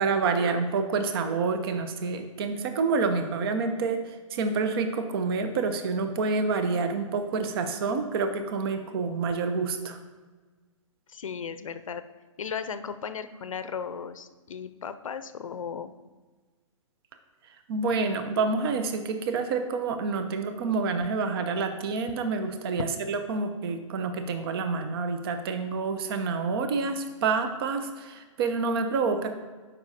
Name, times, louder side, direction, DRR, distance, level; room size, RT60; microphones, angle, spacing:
voice 1, 0.0-10.0 17.7-29.3, right 4 dB, 45° right, 8 dB, 0.7 m, -28 dB
voice 2, 11.1-12.0 12.4-15.9, left 6 dB, 75° left, 11 dB, 0.5 m, -36 dB
12.0 x 5.4 x 2.8 m, 1.3 s
hypercardioid pair, 125°, 17 cm